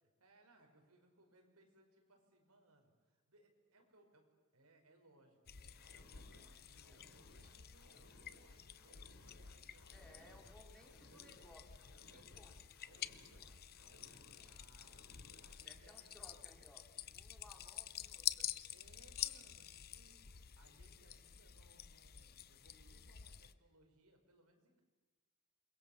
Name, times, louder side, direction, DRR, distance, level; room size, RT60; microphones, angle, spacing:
voice 1, 0.0-10.4 11.1-11.5 12.1-12.4 12.9-13.5 13.8-15.1 15.4-16.4 18.5-24.8, right 2 dB, 85° right, 2 dB, 5.3 m, -69 dB
sound 1, 5.5-23.5, left 11 dB, 45° left, 0.7 m, -49 dB
sound 2, 5.7-15.7, left 1 dB, 65° left, 4.1 m, -65 dB
voice 2, 9.9-11.8 12.1-12.5 15.6-18.5, left 1 dB, 5° left, 1 dB, 3.2 m, -62 dB
28.0 x 22.0 x 7.2 m, 1.3 s
head